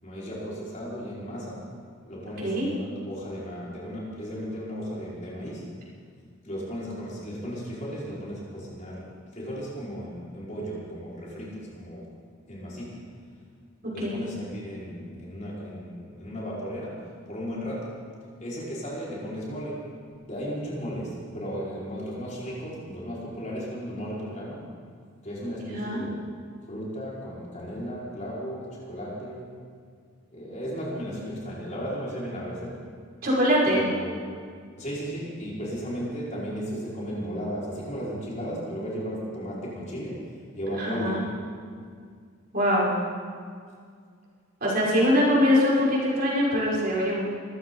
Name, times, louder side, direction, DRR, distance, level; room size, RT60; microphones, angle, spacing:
voice 1, 0.0-1.6 2.0-5.6 6.4-12.1 12.4-13.0 13.9-17.0 17.3-18.0 18.4-19.9 20.3-24.7 25.2-26.2 26.7-29.5 30.3-32.9 33.7-34.2 34.8-40.3 40.6-41.2, equal, 35° left, -7 dB, 5.2 m, -35 dB
voice 2, 2.4-2.7 13.8-14.3 25.6-26.0 33.2-33.8 40.8-41.2 42.5-42.9 44.6-47.2, equal, 50° right, -6 dB, 5.5 m, -23 dB
24.0 x 15.0 x 4.0 m, 2.1 s
head